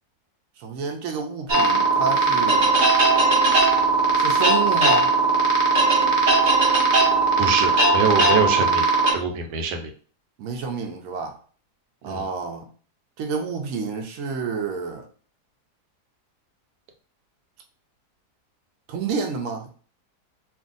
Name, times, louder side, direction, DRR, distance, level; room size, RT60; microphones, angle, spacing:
voice 1, 0.6-2.7 4.1-5.1 10.4-11.4 12.0-12.7 13.2-15.1 18.9-19.7, right 5 dB, 65° right, 0.9 m, -29 dB
sound 1, 1.5-9.1, right 3 dB, 45° right, 0.6 m, -18 dB
voice 2, 7.4-9.9 12.0-12.3, right 5 dB, 85° right, 1.2 m, -25 dB
2.7 x 2.5 x 3.8 m
omnidirectional pair, 1.8 m